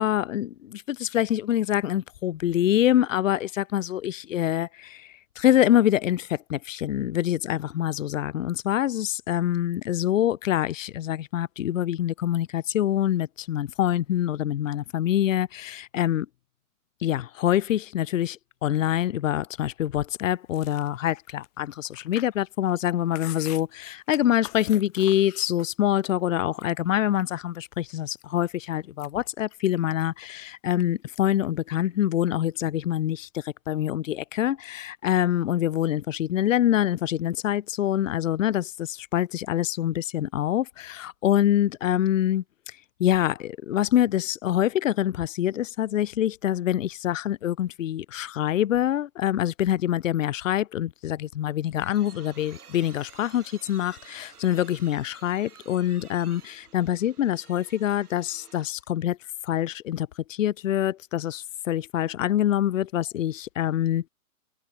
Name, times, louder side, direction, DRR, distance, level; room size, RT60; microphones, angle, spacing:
voice 1, 0.0-16.3 17.0-42.4 43.0-59.2 59.4-64.1, left 11 dB, 60° left, 0.7 m, -25 dB
Chewing mastication, 20.5-26.0 26.3-27.4 27.9-28.5 28.8-30.8 31.1-31.5 31.7-32.6, left 20 dB, 25° left, 2.8 m, -46 dB
sound 1, 51.4-58.9, right 7 dB, 85° right, 7.4 m, -52 dB
hypercardioid pair, 170°, 44 cm